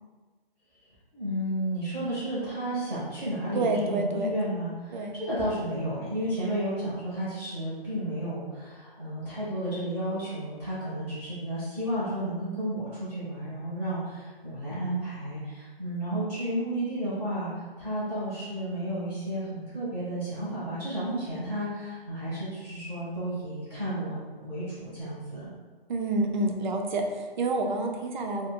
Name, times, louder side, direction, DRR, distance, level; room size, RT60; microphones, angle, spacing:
voice 1, 1.1-25.5, right 1 dB, 5° right, -12 dB, 0.6 m, -32 dB
voice 2, 3.5-4.3 4.9-5.2 25.9-28.5, right 2 dB, 50° right, 3 dB, 0.4 m, -28 dB
2.4 x 2.3 x 3.5 m, 1.4 s
hypercardioid pair, 150°, 31 cm